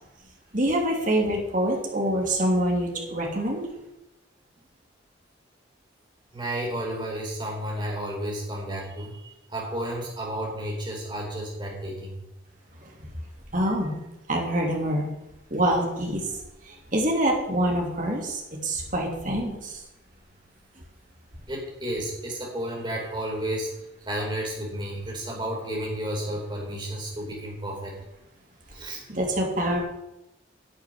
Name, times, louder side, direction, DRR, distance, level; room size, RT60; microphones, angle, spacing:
voice 1, 0.5-3.7 12.8-13.1 13.5-14.0 14.3-15.1 15.5-19.8 20.8-20.9 29.1-29.8, right 1 dB, 45° right, 0 dB, 3.1 m, -26 dB
voice 2, 6.3-12.2 21.5-23.7 24.1-27.9 28.7-29.0, right 1 dB, 25° right, -2 dB, 4.4 m, -32 dB
11.0 x 7.0 x 9.5 m, 0.92 s
head